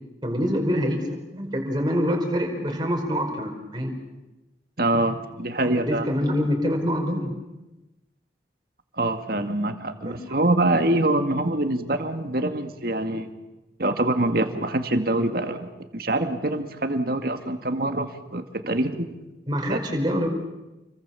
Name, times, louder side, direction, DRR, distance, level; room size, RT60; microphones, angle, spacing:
voice 1, 0.2-3.9 4.9-5.1 5.6-7.3 10.0-10.4 19.5-20.3, equal, 25° right, 2 dB, 5.0 m, -26 dB
voice 2, 4.8-6.1 9.0-13.3 13.8-15.7 15.9-19.1 19.7-19.8, right 1 dB, 55° right, 7 dB, 2.1 m, -25 dB
29.5 x 23.0 x 7.1 m, 1.0 s
head